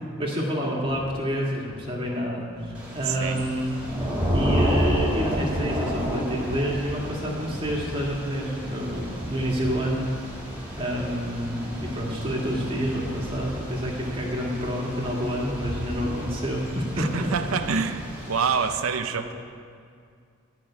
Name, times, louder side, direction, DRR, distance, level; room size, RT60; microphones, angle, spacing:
voice 1, 0.2-3.9 4.3-10.0 10.8-17.6 19.1-19.3, equal, 25° right, -3 dB, 1.9 m, -28 dB
sound 1, 0.8-1.1 1.7-1.9 2.5-4.5 5.1-5.4 6.0-7.9 8.5-8.8 9.4-9.7 10.3-10.5 10.9-13.7, equal, 10° left, 2.5 m, -41 dB
Thunder / Rain, 2.7-18.8, equal, 10° right, 2.6 m, -31 dB
voice 2, 3.0-3.4 17.0-18.0 18.3-19.3, right 5 dB, 70° right, 7 dB, 0.6 m, -26 dB
12.5 x 6.0 x 8.7 m, 2.2 s
head